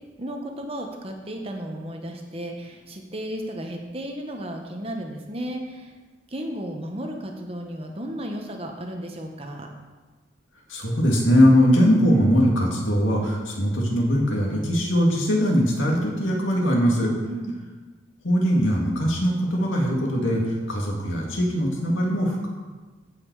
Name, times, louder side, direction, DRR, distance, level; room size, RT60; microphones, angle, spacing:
voice 1, 0.2-5.9 6.3-9.7 17.2-17.6, right 1 dB, 30° right, 2 dB, 1.1 m, -34 dB
voice 2, 10.7-17.1 18.2-22.5, equal, 90° left, -1 dB, 2.3 m, -21 dB
15.0 x 5.7 x 4.8 m, 1.3 s
head